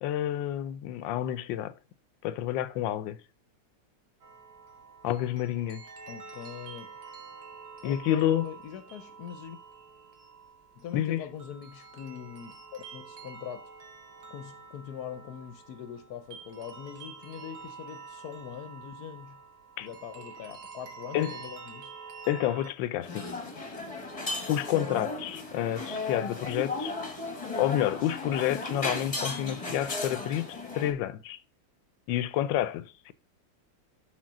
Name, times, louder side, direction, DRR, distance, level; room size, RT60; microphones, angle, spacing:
voice 1, 0.0-1.7 2.2-3.2 5.0-5.8 7.8-8.5 10.9-11.2 19.8-19.9 21.1-21.3 22.3-23.3 24.5-26.9 27.5-31.4 32.1-33.1, left 12 dB, 90° left, 1.3 m, -29 dB
sound 1, 4.2-22.7, right 5 dB, 60° right, 1.6 m, -47 dB
voice 2, 6.1-7.0 7.8-9.6 10.8-13.7 14.3-19.4 19.8-21.9, left 8 dB, 65° left, 1.1 m, -42 dB
sound 2, 23.0-30.9, left 3 dB, 25° left, 1.0 m, -35 dB
6.4 x 3.9 x 5.9 m
omnidirectional pair, 2.0 m